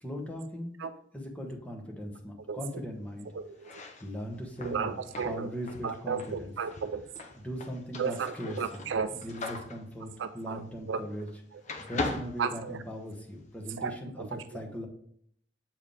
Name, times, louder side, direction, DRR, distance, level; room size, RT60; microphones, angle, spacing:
voice 1, 0.0-0.7 1.1-3.3 3.7-5.0 5.2-6.5 7.4-11.3 11.9-14.9, equal, 10° left, 1.1 m, -39 dB
voice 2, 3.3-3.7 4.6-5.5 5.8-7.1 8.0-9.1 10.2-10.6 10.9-11.0 12.4-12.8 13.8-13.9 14.2-14.4, right 6 dB, 70° right, 0.4 m, -33 dB
sound 1, 3.5-11.4 11.6-13.3, left 2 dB, 40° left, 0.7 m, -40 dB
7.5 x 4.6 x 3.4 m
head